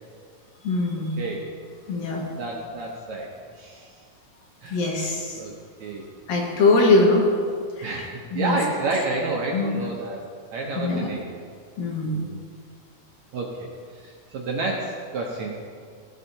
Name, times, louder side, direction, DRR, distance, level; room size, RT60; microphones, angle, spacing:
voice 1, 0.6-1.1 1.9-2.2 4.7-5.4 6.3-7.2 7.8-8.0 8.3-8.6 9.5-9.7 10.8-11.1 11.8-12.2, left 3 dB, 75° left, -2 dB, 3.1 m, -22 dB
voice 2, 1.2-1.5 2.3-3.3 3.6-4.0 4.6-4.8 5.3-5.5 5.8-6.0 7.8-10.2 10.5-11.3 12.0-12.4 13.3-15.7, right 3 dB, 70° right, -2 dB, 1.8 m, -30 dB
16.5 x 8.1 x 2.8 m, 2.1 s
omnidirectional pair, 4.1 m